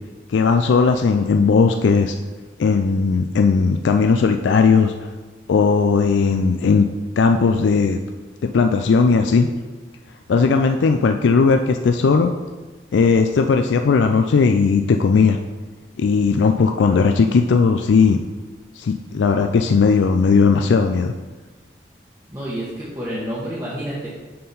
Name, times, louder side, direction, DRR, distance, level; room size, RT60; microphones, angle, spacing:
voice 1, 0.3-2.1 2.6-4.9 5.5-6.8 7.2-8.0 8.4-9.5 10.3-12.3 12.9-15.4 16.0-18.2 18.8-21.1, left 5 dB, 90° left, 6 dB, 0.4 m, -17 dB
voice 2, 22.3-24.1, equal, 20° right, -9 dB, 1.1 m, -29 dB
6.6 x 3.8 x 5.4 m, 1.3 s
head